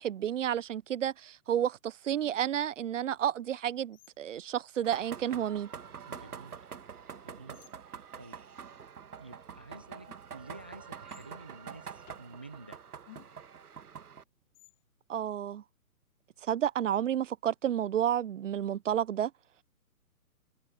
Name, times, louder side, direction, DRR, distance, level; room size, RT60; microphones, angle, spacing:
voice 1, 0.0-5.7 15.1-15.6 16.4-19.3, right 10 dB, 55° right, 0.7 m, -31 dB
sound 1, 2.2-2.8 3.9-4.4 5.3-5.4 6.1-6.6 7.5-7.8 10.1-10.5 11.1-11.3 12.1-12.4 13.0-13.6 14.5-14.9, left 15 dB, 30° left, 1.2 m, -58 dB
sound 2, 4.8-14.2, right 7 dB, 80° right, 1.5 m, -46 dB
voice 2, 6.1-6.7 7.2-7.6 8.2-8.3 9.2-12.8, right 2 dB, 10° right, 0.4 m, -50 dB
hypercardioid pair, 140°, 45 cm